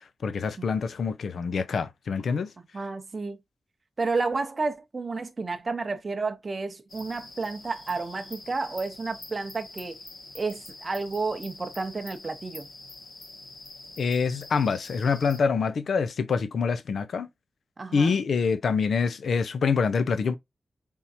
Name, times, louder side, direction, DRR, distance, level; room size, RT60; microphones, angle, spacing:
voice 1, 0.2-2.5 14.0-17.3 17.9-20.4, left 5 dB, 75° left, 0.6 m, -26 dB
voice 2, 2.7-3.4 4.0-10.0 10.3-12.7 17.8-18.1, right 3 dB, 35° right, 0.7 m, -31 dB
sound 1, 6.9-15.4, left 2 dB, 50° left, 1.6 m, -45 dB
4.3 x 3.6 x 2.7 m
wide cardioid pair, 130°, 0 cm